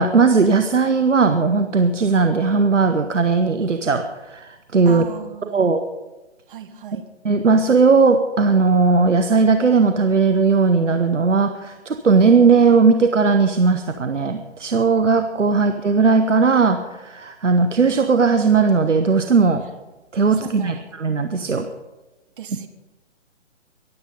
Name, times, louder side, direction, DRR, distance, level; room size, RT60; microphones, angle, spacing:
voice 1, 0.0-5.0 5.5-5.9 7.2-19.6 20.1-21.7, right 4 dB, 85° right, 9 dB, 1.1 m, -17 dB
voice 2, 4.9-5.6 6.5-7.1 20.4-20.8 22.4-22.7, right 8 dB, 45° right, 8 dB, 1.4 m, -36 dB
22.5 x 8.1 x 5.3 m, 1.1 s
figure-of-eight pair, 140°, 36 cm